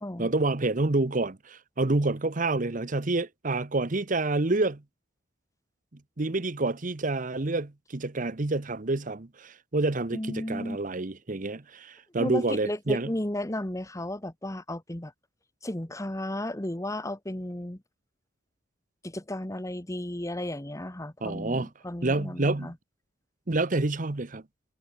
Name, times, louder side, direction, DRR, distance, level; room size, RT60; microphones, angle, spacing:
voice 1, 0.2-4.8 6.2-13.1 21.2-21.7 22.0-22.7 23.5-24.4, right 2 dB, 40° right, 1.0 m, -28 dB
voice 2, 10.1-10.8 12.2-15.1 15.6-17.8 19.0-22.7, left 1 dB, 15° left, 1.2 m, -34 dB
head